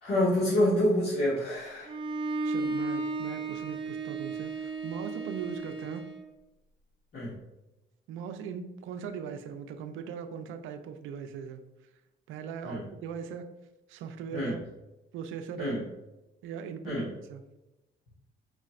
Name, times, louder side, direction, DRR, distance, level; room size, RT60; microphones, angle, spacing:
voice 1, 0.0-1.9 7.1-7.3 12.6-12.8 14.3-14.6 15.6-15.8 16.8-17.1, left 1 dB, 55° left, -9 dB, 1.5 m, -27 dB
Bowed string instrument, 1.8-6.3, right 3 dB, 25° right, 0.6 m, -34 dB
voice 2, 2.4-6.1 8.1-11.6 12.3-13.5 13.9-14.6 15.1-15.8 16.4-17.4, right 7 dB, 90° right, 7 dB, 0.5 m, -39 dB
4.8 x 3.1 x 2.4 m, 0.99 s
cardioid pair, 90°, 20 cm